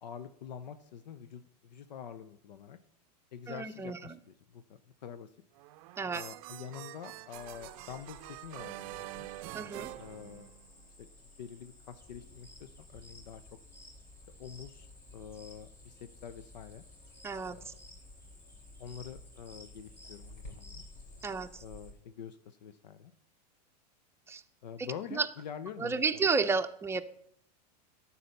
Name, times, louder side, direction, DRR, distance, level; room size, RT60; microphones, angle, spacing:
voice 1, 0.0-2.8 3.3-5.3 6.1-9.3 10.0-10.5 11.0-11.1 11.4-13.4 14.4-16.8 17.5-17.8 18.8-20.8 21.6-23.1 24.6-26.2, left 8 dB, 80° left, 11 dB, 0.7 m, -46 dB
voice 2, 3.5-4.2 6.0-6.2 9.5-9.9 17.2-17.7 21.2-21.6 24.3-24.4 24.8-25.3 25.8-27.0, right 4 dB, 10° right, 8 dB, 0.6 m, -32 dB
sound 1, 5.6-10.9, right 18 dB, 55° right, 0.5 m, -46 dB
Cricket, 7.3-21.9, left 1 dB, 65° left, 4.1 m, -56 dB
sound 2, 12.0-21.3, left 2 dB, 10° left, 1.8 m, -55 dB
12.5 x 4.2 x 6.5 m, 0.69 s
hypercardioid pair, 110°, 21 cm